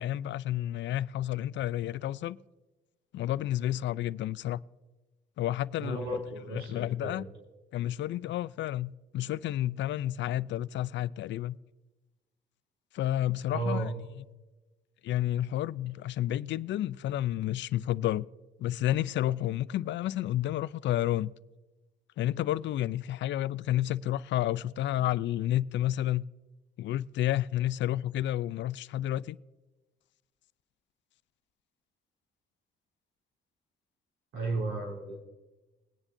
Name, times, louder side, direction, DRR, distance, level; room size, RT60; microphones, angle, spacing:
voice 1, 0.0-2.4 3.1-4.6 5.4-6.0 6.5-7.3 7.7-11.6 12.9-13.9 15.0-18.3 18.6-21.3 22.2-26.3 26.8-29.4, left 13 dB, 65° left, 0.4 m, -30 dB
voice 2, 5.8-7.2 13.5-13.9 34.3-35.2, right 2 dB, 90° right, 3.3 m, -34 dB
21.0 x 9.9 x 2.6 m
cardioid pair, 90°, 20 cm